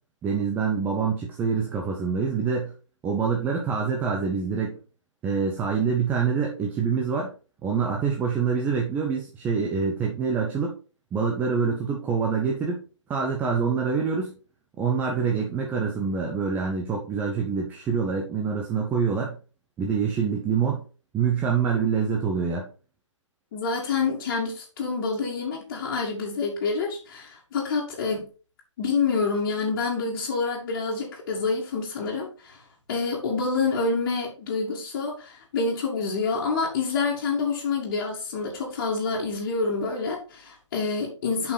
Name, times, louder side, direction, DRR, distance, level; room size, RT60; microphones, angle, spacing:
voice 1, 0.2-2.7 3.0-4.8 5.2-7.3 7.6-10.8 11.1-14.4 14.8-19.4 19.8-20.8 21.1-22.7, right 6 dB, 10° right, 1 dB, 0.8 m, -26 dB
voice 2, 23.5-28.3 28.8-32.6 32.9-41.5, left 4 dB, 35° left, -4 dB, 2.1 m, -27 dB
6.8 x 5.3 x 4.1 m, 0.36 s
figure-of-eight pair, 140°, 16 cm